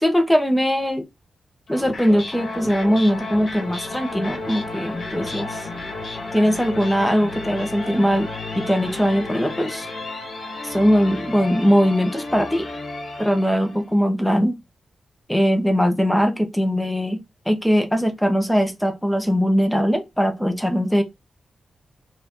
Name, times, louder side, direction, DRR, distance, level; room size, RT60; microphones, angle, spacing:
voice 1, 0.0-1.1 1.7-5.7 6.3-9.9 10.6-12.7 13.2-14.6 15.3-17.2 17.5-21.0, equal, ahead, 1.1 m, -20 dB
sound 1, 1.7-13.9, left 2 dB, 55° left, 1.8 m, -32 dB
4.8 x 2.8 x 3.8 m
wide cardioid pair, 105°, 0 cm